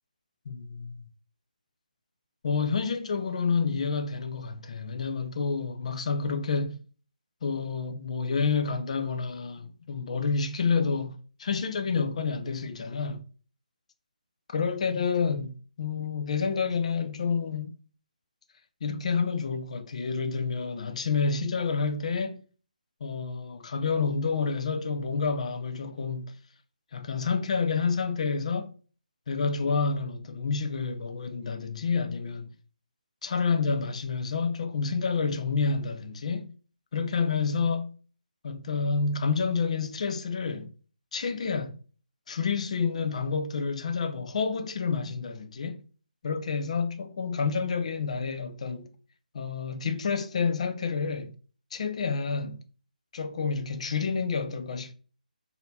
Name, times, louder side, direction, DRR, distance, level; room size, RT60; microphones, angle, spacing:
voice 1, 0.5-0.9 2.4-6.8 7.4-13.2 14.5-17.7 18.8-22.4 23.0-26.3 26.9-28.7 29.3-32.5 33.2-36.5 36.9-37.9 38.4-40.7 41.1-41.8 42.3-45.8 46.2-48.9 49.3-51.3 51.7-52.6 53.1-54.9, left 5 dB, 45° left, 0.6 m, -29 dB
4.1 x 2.8 x 4.0 m
hypercardioid pair, 160°, 5 cm